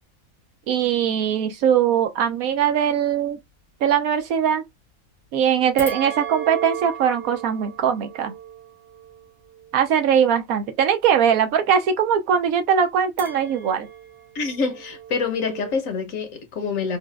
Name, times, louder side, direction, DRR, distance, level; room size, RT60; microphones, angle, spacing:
voice 1, 0.7-3.4 3.8-4.6 5.3-8.3 9.7-13.9, right 8 dB, 75° right, 1.1 m, -21 dB
sound 1, 5.8-10.3 13.2-15.7, right 8 dB, 50° right, 1.6 m, -36 dB
voice 2, 14.3-17.0, left 5 dB, 65° left, 1.3 m, -26 dB
4.1 x 2.3 x 2.3 m
omnidirectional pair, 1.5 m